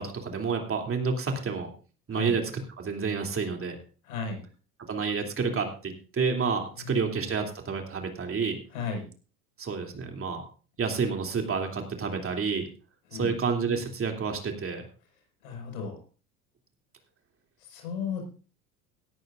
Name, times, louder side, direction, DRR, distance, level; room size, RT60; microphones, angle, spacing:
voice 1, 0.0-1.7 2.1-3.8 4.9-8.6 9.6-10.4 10.8-12.7 13.1-14.8, right 5 dB, 30° right, 3 dB, 3.0 m, -29 dB
voice 2, 4.0-4.4 8.7-9.1 13.1-13.3 15.4-16.0 17.6-18.2, left 5 dB, 70° left, 2 dB, 5.6 m, -34 dB
18.0 x 13.0 x 2.6 m, 0.37 s
hypercardioid pair, 75°, 44 cm